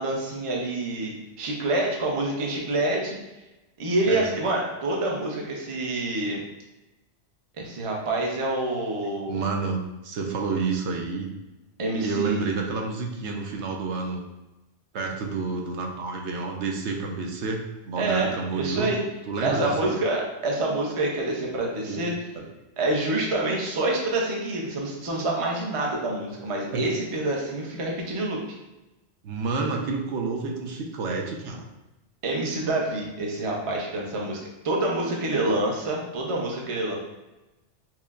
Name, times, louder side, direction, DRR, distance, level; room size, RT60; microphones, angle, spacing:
voice 1, 0.0-3.2 3.8-6.4 7.6-9.4 11.8-12.5 18.0-19.0 19.4-22.1 22.8-28.4 32.2-37.0, right 2 dB, 35° right, -1 dB, 0.6 m, -27 dB
voice 2, 9.3-11.3 12.0-14.2 14.9-18.9 19.3-20.0 21.9-22.1 22.3-22.5 26.7-26.8 29.2-31.7 35.4-35.6, right 4 dB, 80° right, 1 dB, 0.9 m, -29 dB
5.8 x 2.0 x 2.4 m, 1.0 s
omnidirectional pair, 1.2 m